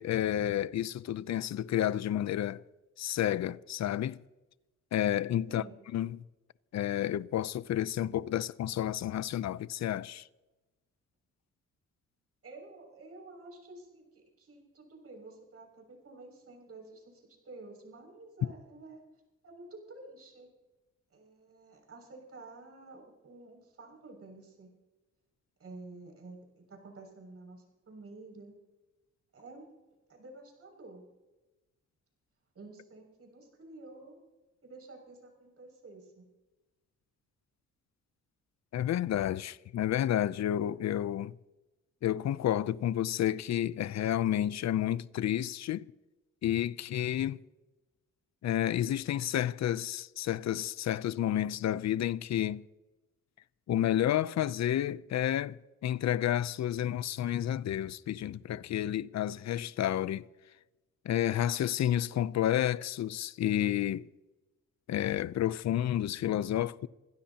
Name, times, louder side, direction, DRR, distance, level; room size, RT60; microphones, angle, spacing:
voice 1, 0.0-2.6 3.0-4.2 4.9-5.6 5.9-6.2 6.7-10.3 38.7-41.3 42.0-45.9 46.4-47.4 48.4-52.6 53.7-60.3 61.0-64.1 64.9-66.9, left 11 dB, 65° left, 0.6 m, -30 dB
voice 2, 5.5-5.8 12.4-19.0 19.4-20.5 21.1-24.7 25.6-28.6 29.3-29.7 30.1-31.0 32.5-34.2 34.6-36.2, right 2 dB, 50° right, 6.5 m, -50 dB
27.0 x 16.0 x 2.9 m
cardioid pair, 80°, 30 cm